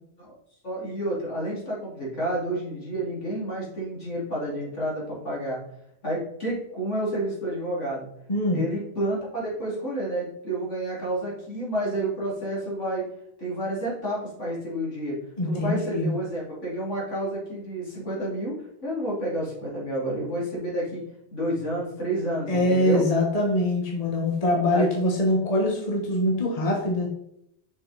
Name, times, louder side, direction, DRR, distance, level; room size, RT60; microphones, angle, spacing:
voice 1, 0.6-5.6 6.0-8.1 8.5-13.1 13.4-15.2 15.4-18.6 18.8-21.0 21.3-23.0 24.7-24.9, right 1 dB, 75° left, -5 dB, 3.3 m, -30 dB
voice 2, 8.3-8.6 15.4-16.1 22.5-27.1, left 1 dB, 30° left, -1 dB, 1.3 m, -23 dB
6.3 x 5.2 x 4.1 m, 0.75 s
omnidirectional pair, 1.2 m